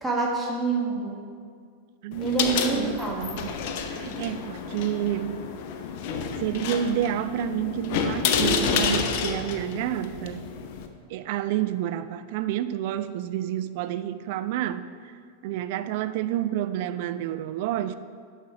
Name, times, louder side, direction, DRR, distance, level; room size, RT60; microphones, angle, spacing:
voice 1, 0.0-1.2 2.2-3.3, right 3 dB, 5° right, -3 dB, 1.5 m, -28 dB
voice 2, 2.0-3.6 3.8-5.4 6.4-10.4 11.1-15.1 15.4-18.0, right 11 dB, 50° right, 12 dB, 0.3 m, -29 dB
sound 1, 2.1-10.9, left 6 dB, 45° left, 0.6 m, -29 dB
7.5 x 5.5 x 4.8 m, 2.1 s
figure-of-eight pair, 90°, 0 cm